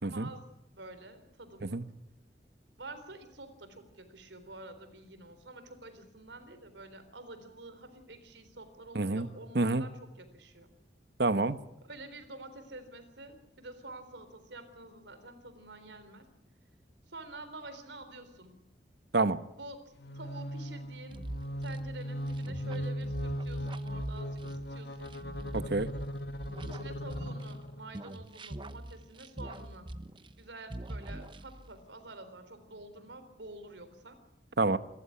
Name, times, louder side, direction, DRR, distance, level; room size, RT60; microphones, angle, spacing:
voice 1, 0.0-1.8 2.8-10.7 11.8-16.3 17.1-18.6 19.5-21.2 21.6-25.1 26.6-29.9 30.4-34.2, right 2 dB, 90° right, 10 dB, 3.9 m, -48 dB
voice 2, 8.9-9.3 9.5-9.8 11.2-11.6 19.1-19.4 25.5-25.9 34.6-34.8, right 2 dB, 65° right, 13 dB, 1.1 m, -27 dB
sound 1, 20.0-27.9, equal, 70° left, 2.0 m, -38 dB
sound 2, 21.1-27.6 27.9-30.4 30.7-31.8, right 1 dB, 30° right, 0.9 m, -43 dB
27.0 x 14.0 x 9.9 m, 0.84 s
head